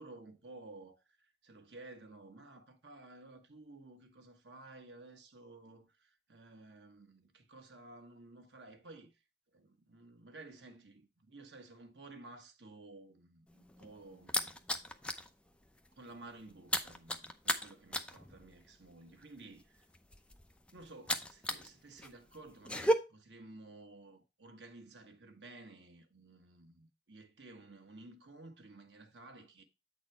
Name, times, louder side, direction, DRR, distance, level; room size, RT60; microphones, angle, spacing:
voice 1, 0.0-9.1 9.5-14.6 16.0-19.9 20.7-29.6, right 2 dB, 85° right, 1.3 m, -54 dB
sound 1, 13.5-15.3 15.6-15.9 16.1-21.7 22.0-22.9, equal, 5° left, 0.6 m, -35 dB
8.2 x 4.2 x 4.4 m
head